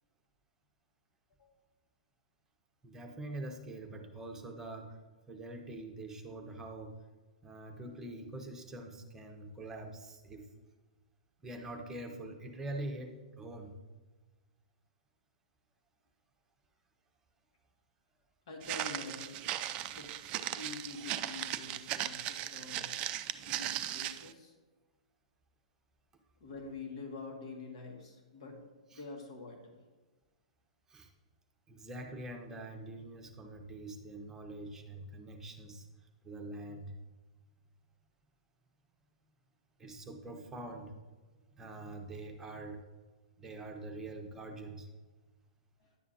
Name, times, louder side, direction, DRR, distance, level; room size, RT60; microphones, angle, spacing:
voice 1, 2.8-4.9 5.3-6.9 7.4-10.5 11.4-13.7 28.9-29.0 30.9-31.1 31.7-35.9 36.2-36.9 39.8-40.9 41.6-42.8 43.4-44.9, right 2 dB, 10° right, 3 dB, 1.0 m, -44 dB
voice 2, 18.5-19.4 19.9-23.0 23.4-24.5 26.4-28.6 28.9-29.8, left 3 dB, 55° left, 1 dB, 2.0 m, -46 dB
Walk footsteps, 18.6-24.3, right 12 dB, 30° right, 0.3 m, -37 dB
10.5 x 7.3 x 2.8 m, 1.3 s
figure-of-eight pair, 115°, 4 cm